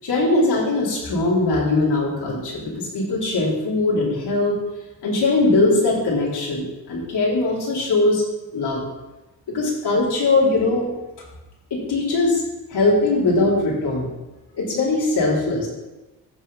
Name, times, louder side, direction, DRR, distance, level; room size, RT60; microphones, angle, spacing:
voice 1, 0.0-4.6 5.0-8.2 8.5-8.8 9.5-10.9 11.7-12.4 12.7-14.1 14.6-15.7, left 2 dB, 75° left, -5 dB, 4.3 m, -20 dB
14.5 x 4.9 x 6.0 m, 1.1 s
wide cardioid pair, 125°, 40 cm